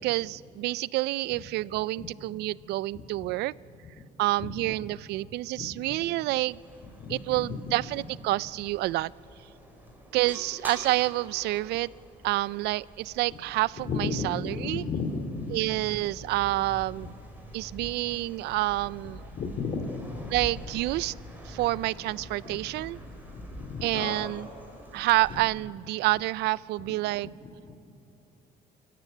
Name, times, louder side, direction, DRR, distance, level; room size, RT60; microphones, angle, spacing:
voice 1, 0.0-3.5 4.2-6.6 7.1-9.1 10.1-11.9 12.2-14.8 15.5-17.1 17.5-19.3 20.3-21.1 21.5-23.0 23.8-24.5 24.9-27.3, right 18 dB, 80° right, 22 dB, 0.4 m, -28 dB
sound 1, 6.4-25.4, equal, 10° right, 4.7 m, -46 dB
voice 2, 7.0-7.6 13.8-15.6 19.3-20.0 22.4-22.6 23.3-24.3 25.3-25.4 27.4-27.7, left 4 dB, 55° left, 3 dB, 3.3 m, -33 dB
26.5 x 14.5 x 9.3 m, 2.9 s
cardioid pair, 110°, 17 cm